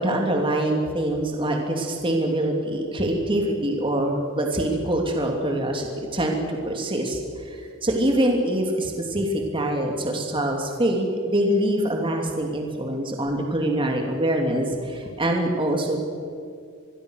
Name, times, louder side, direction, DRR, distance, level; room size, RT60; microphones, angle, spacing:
voice 1, 0.0-7.2 7.5-16.0, right 1 dB, 25° right, 1 dB, 2.7 m, -24 dB
25.5 x 22.5 x 6.5 m, 2.3 s
head